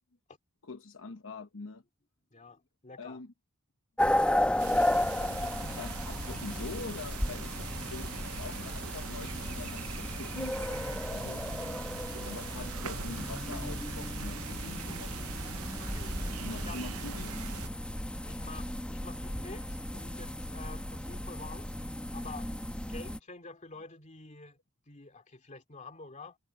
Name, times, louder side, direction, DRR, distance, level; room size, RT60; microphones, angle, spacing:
voice 1, 0.6-1.8 3.0-3.3 4.0-11.4 12.2-15.3 16.4-17.3, left 3 dB, 65° left, 1.0 m, -44 dB
voice 2, 2.3-3.2 15.8-16.2 16.5-16.8 18.3-21.7 22.1-24.6 24.9-26.4, left 3 dB, 35° left, 2.3 m, -48 dB
sound 1, 4.0-23.2, left 1 dB, 5° left, 0.9 m, -34 dB
sound 2, 4.6-17.7, right 7 dB, 85° right, 0.7 m, -42 dB
head